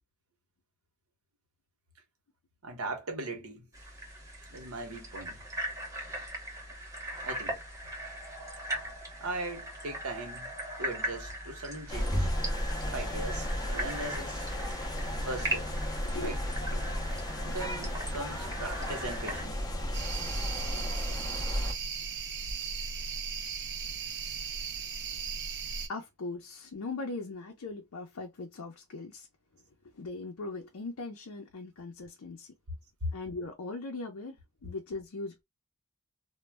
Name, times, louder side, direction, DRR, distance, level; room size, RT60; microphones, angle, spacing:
voice 1, 2.6-3.7 4.5-5.4 7.2-7.6 9.2-10.5 10.8-12.3 12.8-14.5 15.3-15.7 16.2-16.4 17.4-19.6 25.1-25.2, right 2 dB, 65° right, 0.9 m, -39 dB
sound 1, 3.7-19.5, right 1 dB, 15° right, 0.8 m, -39 dB
sound 2, 11.9-21.7, equal, 20° left, 0.5 m, -34 dB
voice 2, 16.0-16.4 16.7-16.9 25.9-29.3 29.9-32.5 33.1-35.4, left 3 dB, 75° left, 0.5 m, -40 dB
sound 3, 19.9-25.9, right 6 dB, 50° right, 0.5 m, -37 dB
2.2 x 2.0 x 3.3 m
head